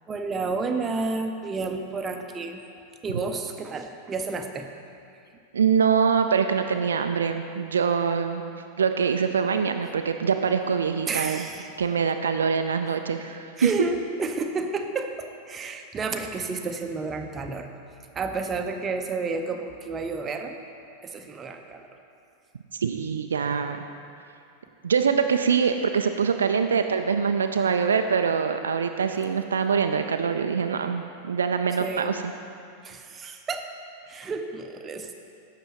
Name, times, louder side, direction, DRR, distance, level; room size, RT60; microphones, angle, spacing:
voice 1, 0.1-2.6 3.0-4.7 11.1-11.7 13.6-17.7 18.1-20.6 21.0-21.9 31.8-32.1 32.8-33.6 34.1-35.2, right 4 dB, 20° right, 5 dB, 0.6 m, -31 dB
voice 2, 5.5-8.4 8.8-11.5 11.8-13.7 22.8-23.8 24.8-32.2, right 6 dB, 70° right, 6 dB, 0.3 m, -24 dB
11.5 x 7.6 x 3.0 m, 2.5 s
figure-of-eight pair, 90°, 0 cm